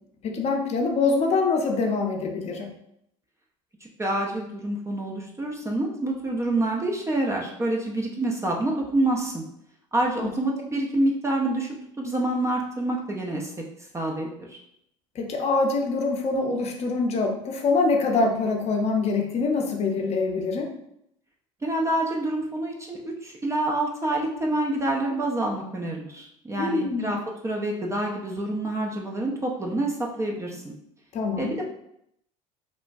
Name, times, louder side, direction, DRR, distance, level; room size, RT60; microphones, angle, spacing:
voice 1, 0.2-2.7 10.2-10.3 15.2-20.7 26.6-27.1 31.1-31.5, left 3 dB, 40° left, 2 dB, 0.6 m, -24 dB
voice 2, 4.0-9.4 9.9-11.7 12.0-13.5 13.9-14.6 21.6-30.7 31.4-31.6, right 1 dB, 20° right, -1 dB, 0.4 m, -27 dB
3.0 x 2.1 x 2.5 m, 0.76 s
hypercardioid pair, 75°, 16 cm